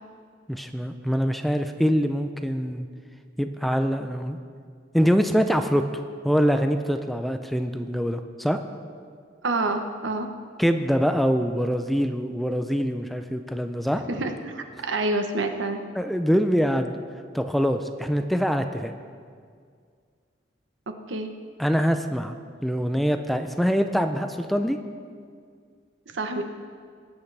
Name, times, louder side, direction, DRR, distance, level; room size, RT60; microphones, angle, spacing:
voice 1, 0.5-2.9 3.4-4.4 4.9-5.8 6.2-8.6 10.6-14.0 16.0-17.0 17.3-18.9 21.6-22.3 22.6-24.8, equal, ahead, 7 dB, 0.4 m, -24 dB
voice 2, 9.4-10.3 14.1-15.8 21.1-21.3 26.1-26.4, right 2 dB, 90° right, 6 dB, 0.9 m, -27 dB
19.5 x 8.3 x 3.4 m, 2.1 s
head